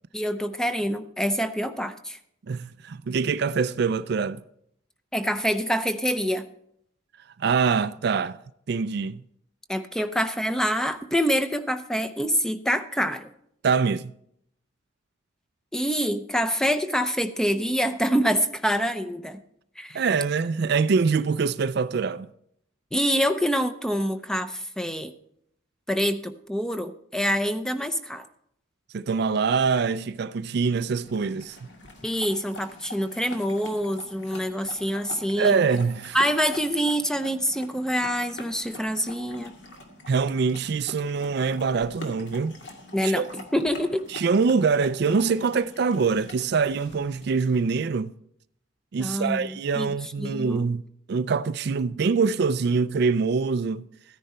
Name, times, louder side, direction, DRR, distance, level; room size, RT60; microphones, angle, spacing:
voice 1, 0.1-2.2 5.1-6.5 9.7-13.3 15.7-19.4 19.8-20.0 22.9-25.1 25.9-28.3 32.0-35.6 36.1-39.6 42.9-44.1 49.0-50.7, equal, 5° left, 0.6 m, -26 dB
voice 2, 2.5-4.4 7.4-8.4 8.7-9.2 13.6-14.1 19.9-22.3 28.9-31.7 35.4-36.2 40.1-42.6 43.0-43.3 44.1-48.1 48.9-50.8 51.1-53.9, right 5 dB, 55° right, 0.4 m, -24 dB
sound 1, 31.0-47.7, left 2 dB, 60° left, 2.1 m, -44 dB
14.5 x 10.0 x 4.3 m
head